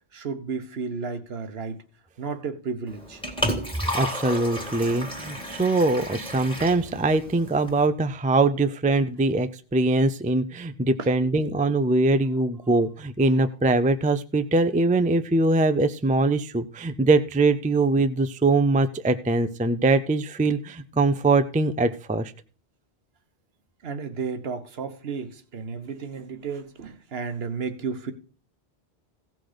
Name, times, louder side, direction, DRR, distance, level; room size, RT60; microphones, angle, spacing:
voice 1, 0.1-1.8 2.2-3.2 11.0-11.1 23.8-28.1, right 5 dB, 70° right, 1.2 m, -33 dB
Liquid, 2.9-7.9, equal, 5° left, 1.8 m, -32 dB
voice 2, 3.9-22.3, right 2 dB, 10° right, 0.4 m, -22 dB
16.0 x 6.0 x 5.0 m
omnidirectional pair, 1.1 m